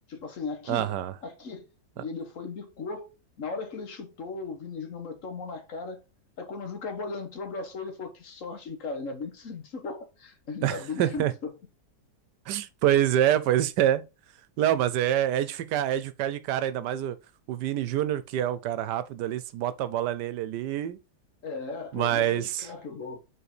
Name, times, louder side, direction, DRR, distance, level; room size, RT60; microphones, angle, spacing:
voice 1, 0.1-0.9 1.2-1.7 2.0-3.1 3.4-6.0 6.4-11.5 21.4-23.2, left 4 dB, 55° left, 1.3 m, -37 dB
voice 2, 0.7-1.1 10.6-11.3 12.5-14.0 14.6-17.2 17.5-21.0 21.9-22.7, right 11 dB, 85° right, 1.2 m, -26 dB
5.7 x 4.0 x 4.2 m
omnidirectional pair, 1.8 m